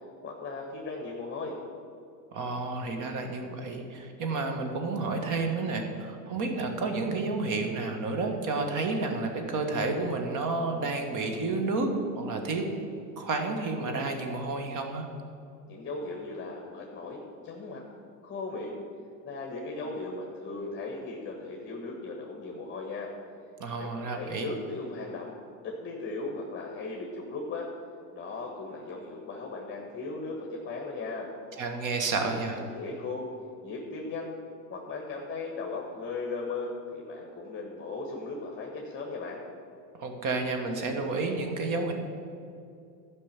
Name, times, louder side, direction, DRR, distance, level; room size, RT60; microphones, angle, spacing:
voice 1, 0.2-1.6 15.7-17.8 18.2-18.8 19.2-23.1 23.8-25.3 25.6-27.7 28.1-31.3 32.3-33.3 33.6-34.3 34.7-39.4, left 3 dB, 25° left, -1 dB, 1.5 m, -37 dB
voice 2, 2.3-11.9 12.2-12.6 13.2-15.0 23.6-24.5 31.6-32.6 40.0-41.9, right 3 dB, 40° right, 4 dB, 1.7 m, -30 dB
12.0 x 5.4 x 7.3 m, 2.5 s
supercardioid pair, 115°, 46 cm